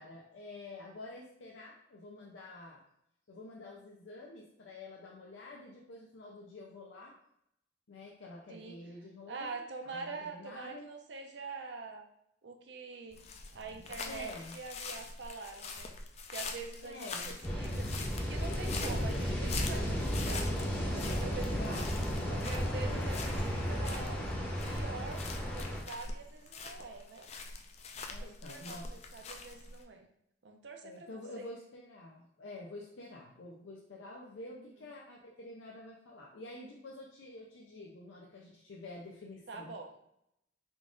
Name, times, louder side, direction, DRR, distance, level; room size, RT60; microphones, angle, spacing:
voice 1, 0.0-2.8 3.3-7.2 7.9-10.9 14.0-14.6 16.8-17.4 21.5-21.9 22.8-23.2 28.1-28.9 30.8-39.7, left 2 dB, 85° left, -3 dB, 0.5 m, -48 dB
voice 2, 9.3-12.0 12.4-13.2 13.5-15.9 16.3-17.9 18.3-21.8 22.3-27.3 27.9-30.1 30.4-31.5 34.5-34.7 39.5-39.9, right 4 dB, 70° right, 4 dB, 0.6 m, -45 dB
sound 1, 13.1-29.8, left 4 dB, 35° left, 0.3 m, -44 dB
sound 2, 17.4-25.8, equal, 10° left, 0.7 m, -34 dB
3.8 x 2.4 x 3.6 m, 0.77 s
head